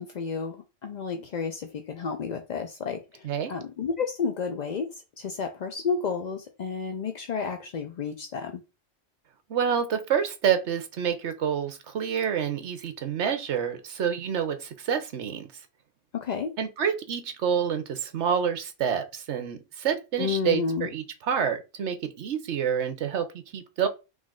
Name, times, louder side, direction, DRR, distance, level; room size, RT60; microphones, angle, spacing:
voice 1, 0.0-8.6 16.1-16.5 20.2-20.9, left 5 dB, 65° left, 0.4 m, -31 dB
voice 2, 9.5-15.5 16.6-23.3 23.5-23.9, right 8 dB, 65° right, 1.1 m, -28 dB
3.9 x 3.1 x 3.7 m
omnidirectional pair, 1.3 m